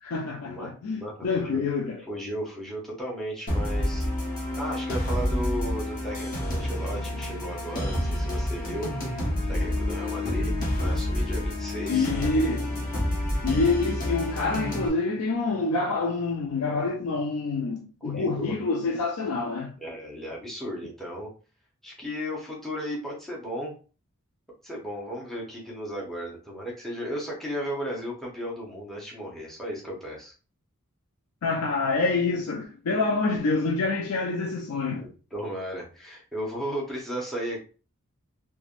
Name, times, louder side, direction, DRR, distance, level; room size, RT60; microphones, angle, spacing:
voice 1, 0.0-2.0 11.9-12.7 13.4-19.7 31.4-35.1, left 3 dB, 90° left, 0.4 m, -27 dB
voice 2, 1.0-1.6 2.1-4.1 4.6-8.9 9.5-12.1 18.0-18.5 19.8-21.3 21.8-23.7 24.6-30.3 35.0-37.6, equal, ahead, 0.8 m, -35 dB
sound 1, 3.5-14.9, left 1 dB, 40° left, 1.0 m, -28 dB
3.2 x 2.2 x 2.4 m
head